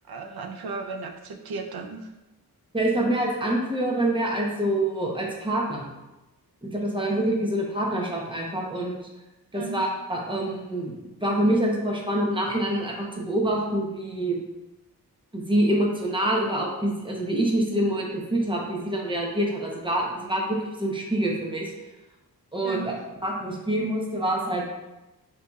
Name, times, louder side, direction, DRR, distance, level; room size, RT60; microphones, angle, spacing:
voice 1, 0.1-2.1 7.0-7.1 9.5-9.8 22.6-23.0, right 3 dB, 80° right, 3 dB, 0.6 m, -36 dB
voice 2, 2.7-5.9 6.6-9.0 9.5-10.9 11.2-14.4 15.3-21.7 22.5-22.9 23.2-24.7, right 1 dB, 15° right, -2 dB, 0.8 m, -26 dB
6.7 x 2.8 x 2.3 m, 1.0 s
wide cardioid pair, 120°, 37 cm